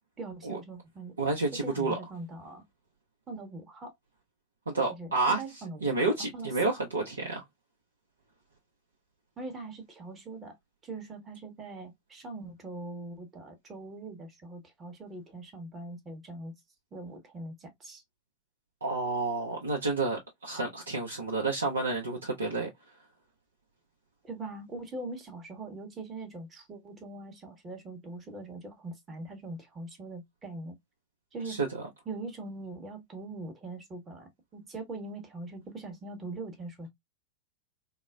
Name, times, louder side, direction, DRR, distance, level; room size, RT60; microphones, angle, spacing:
voice 1, 0.2-1.1 1.6-2.6 3.3-3.9 4.9-6.7 9.4-10.6 10.8-16.5 16.9-18.0 24.2-30.7 31.3-31.6 32.1-36.9, right 2 dB, 20° right, 0.9 m, -42 dB
voice 2, 1.2-2.0 4.7-5.4 5.8-7.4 18.8-22.7 31.4-31.7, right 3 dB, 75° right, 0.6 m, -30 dB
3.8 x 2.0 x 2.3 m
figure-of-eight pair, 90°, 0 cm